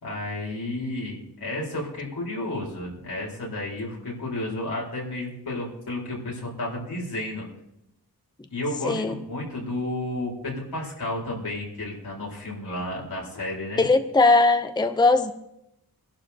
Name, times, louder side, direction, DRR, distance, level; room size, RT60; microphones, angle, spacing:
voice 1, 0.0-7.5 8.5-13.8, left 1 dB, 85° left, -4 dB, 4.3 m, -32 dB
voice 2, 8.8-9.1 13.8-15.3, left 3 dB, 10° left, 8 dB, 0.6 m, -19 dB
24.5 x 11.5 x 2.9 m, 0.83 s
wide cardioid pair, 105°, 38 cm